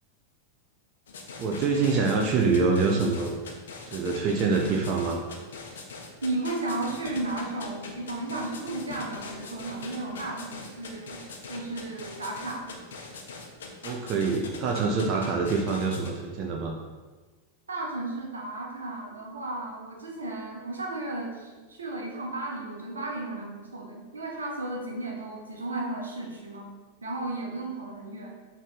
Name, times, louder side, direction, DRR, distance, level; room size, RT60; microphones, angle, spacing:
sound 1, 1.1-16.1, left 4 dB, 60° left, 0.9 m, -42 dB
voice 1, 1.4-3.4 3.9-5.2 13.8-16.7, right 4 dB, 35° right, 0 dB, 0.7 m, -25 dB
voice 2, 6.2-12.8 17.7-26.7 27.0-28.4, right 2 dB, 75° right, 0 dB, 1.2 m, -34 dB
7.3 x 3.4 x 4.1 m, 1.3 s
figure-of-eight pair, 90°, 0 cm